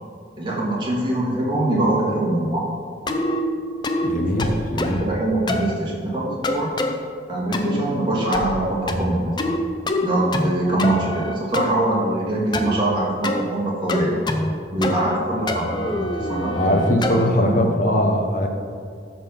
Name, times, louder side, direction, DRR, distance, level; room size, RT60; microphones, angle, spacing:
voice 1, 0.4-2.6 4.3-4.5 4.9-6.7 7.3-9.5 10.0-14.2 14.7-18.5, right 1 dB, 25° right, -5 dB, 2.2 m, -23 dB
sound 1, 3.1-3.4 3.8-4.1 4.4-5.0 5.5-5.7 6.4-6.9 7.5-7.8 8.3-8.6 8.9-9.6 9.9-10.5 10.8-11.7 12.5-12.8 13.2-13.4 13.9-14.5 14.8-15.2 15.5-17.3, left 2 dB, 25° left, 0.6 m, -25 dB
voice 2, 4.0-5.0 16.6-18.5, left 1 dB, 45° left, 3 dB, 1.0 m, -21 dB
13.0 x 4.4 x 5.7 m, 2.3 s
head